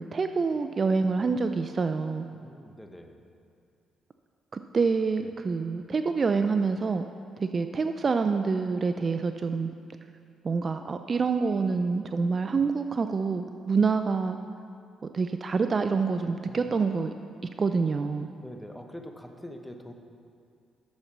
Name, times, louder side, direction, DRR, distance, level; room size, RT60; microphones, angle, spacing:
voice 1, 0.0-2.3 4.5-7.1 7.4-9.7 10.4-14.4 15.1-17.1 17.6-18.3, right 4 dB, 40° right, 8 dB, 0.3 m, -27 dB
voice 2, 2.3-3.2 5.2-5.3 16.4-16.8 18.4-19.9, left 1 dB, 5° left, 4 dB, 0.8 m, -44 dB
7.2 x 6.6 x 5.9 m, 2.4 s
cardioid pair, 90°, 0 cm